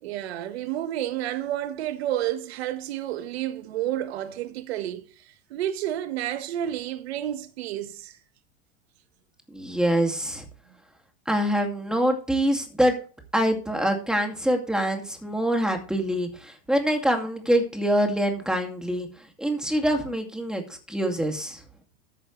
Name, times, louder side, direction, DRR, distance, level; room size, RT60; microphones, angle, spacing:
voice 1, 0.0-5.2 5.5-8.2, right 12 dB, 90° right, 1.6 m, -30 dB
voice 2, 9.5-10.4 11.3-12.9 13.3-19.1 19.4-21.6, right 1 dB, ahead, 2.4 m, -25 dB
13.5 x 9.2 x 3.3 m
supercardioid pair, 140°, 31 cm